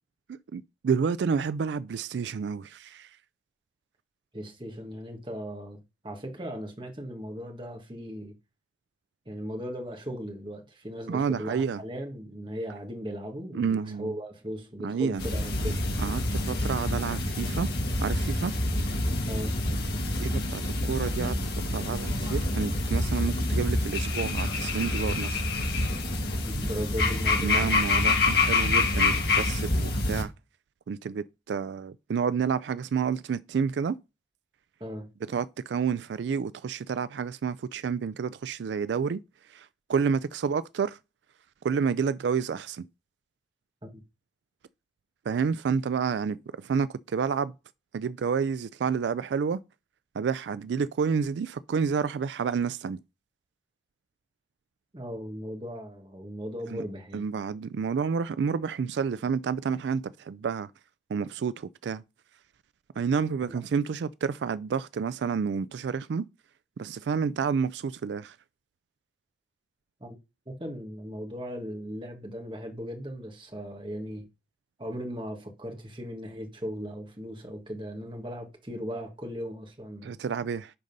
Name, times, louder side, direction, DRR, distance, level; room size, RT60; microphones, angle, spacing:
voice 1, 0.5-3.1 11.1-11.8 13.5-14.1 14.8-15.2 16.0-17.7 18.0-18.5 20.2-21.4 21.7-25.4 27.4-30.3 30.9-34.0 35.3-39.2 39.5-41.0 41.6-42.8 45.3-47.5 47.9-49.6 50.2-53.0 57.1-60.7 61.1-62.0 63.0-66.2 66.8-68.3 80.0-80.7, right 6 dB, 80° right, 0.3 m, -29 dB
voice 2, 4.3-8.3 9.3-15.8 19.3-19.6 26.4-27.9 34.8-35.1 43.8-44.0 54.9-57.3 63.4-63.6 70.0-70.2 70.5-74.3 74.8-80.2, equal, 30° right, 1.7 m, -38 dB
sound 1, 15.2-30.2, left 2 dB, 65° left, 2.4 m, -27 dB
10.0 x 4.0 x 5.4 m
head